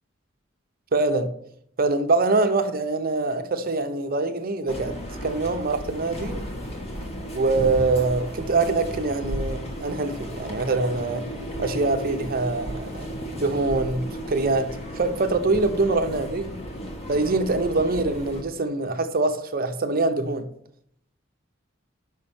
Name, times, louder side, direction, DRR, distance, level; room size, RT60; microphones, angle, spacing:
voice 1, 0.9-1.3 1.8-5.0 5.2-6.4 7.3-11.3 11.6-16.5 17.1-20.5, right 3 dB, 50° right, 0.8 m, -24 dB
sound 1, 4.7-18.4, equal, 30° left, 1.7 m, -34 dB
6.3 x 5.6 x 7.1 m
head